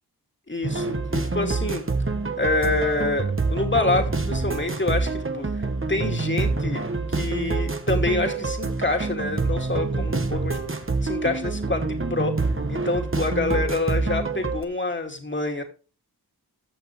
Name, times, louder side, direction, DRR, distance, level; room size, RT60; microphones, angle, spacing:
voice 1, 0.5-1.8 2.4-10.6 11.0-12.4 12.7-15.6, left 2 dB, 30° left, 4 dB, 2.7 m, -27 dB
sound 1, 0.6-14.6, right 3 dB, 30° right, 1.4 m, -26 dB
14.5 x 6.7 x 3.3 m, 0.35 s
cardioid pair, 40°, 40 cm